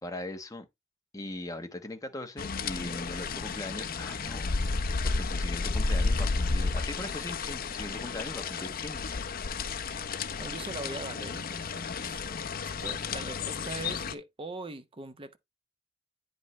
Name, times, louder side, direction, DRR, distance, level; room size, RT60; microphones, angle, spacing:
voice 1, 0.0-0.7 1.1-9.1, left 1 dB, 20° left, 1.1 m, -40 dB
sound 1, 2.4-14.1, left 4 dB, 50° left, 0.7 m, -32 dB
voice 2, 10.4-12.2 12.6-15.4, right 2 dB, 30° right, 0.9 m, -41 dB
9.3 x 5.3 x 3.1 m
head